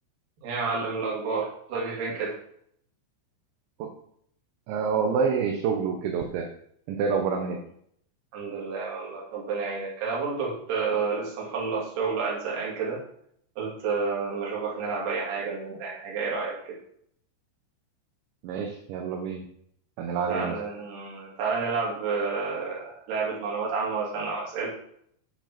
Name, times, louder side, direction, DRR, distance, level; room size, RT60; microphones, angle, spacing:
voice 1, 0.4-2.3 8.3-13.0 13.6-16.7 20.3-22.8 23.1-24.7, right 4 dB, 50° right, -4 dB, 3.5 m, -30 dB
voice 2, 4.7-6.5 6.9-7.6 18.4-19.4 20.0-20.6, right 6 dB, 75° right, 3 dB, 3.0 m, -27 dB
9.1 x 4.9 x 5.9 m, 0.69 s
omnidirectional pair, 5.8 m